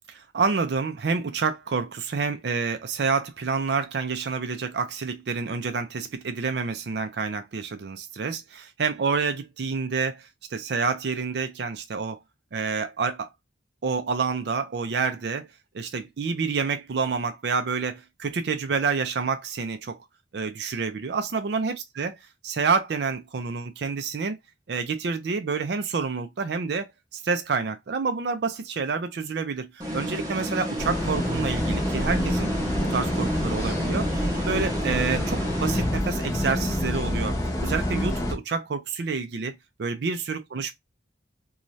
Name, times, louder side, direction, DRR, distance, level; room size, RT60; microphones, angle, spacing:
voice 1, 0.1-12.2 12.5-13.3 13.8-15.5 15.7-20.0 20.3-22.1 22.4-24.4 24.7-32.5 32.9-34.1 34.5-40.7, right 5 dB, 60° right, 0.4 m, -28 dB
sound 1, 29.8-36.4, right 1 dB, 20° right, 0.7 m, -31 dB
sound 2, 30.8-38.3, left 1 dB, 15° left, 0.7 m, -27 dB
2.6 x 2.3 x 3.0 m
head